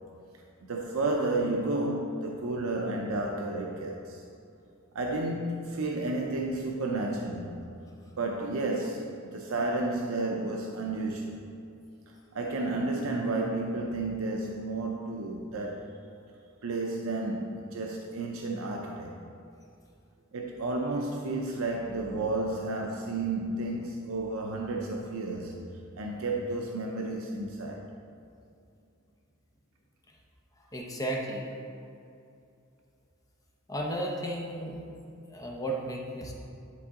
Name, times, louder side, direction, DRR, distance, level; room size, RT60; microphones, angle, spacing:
voice 1, 0.6-4.2 4.9-7.6 8.2-11.4 12.3-15.9 16.6-19.2 20.3-25.7 26.0-27.8, right 2 dB, 80° right, 1 dB, 0.5 m, -32 dB
voice 2, 30.7-31.5 33.7-34.8 35.3-36.3, right 1 dB, 15° left, -1 dB, 0.7 m, -33 dB
10.5 x 3.6 x 3.7 m, 2.6 s
head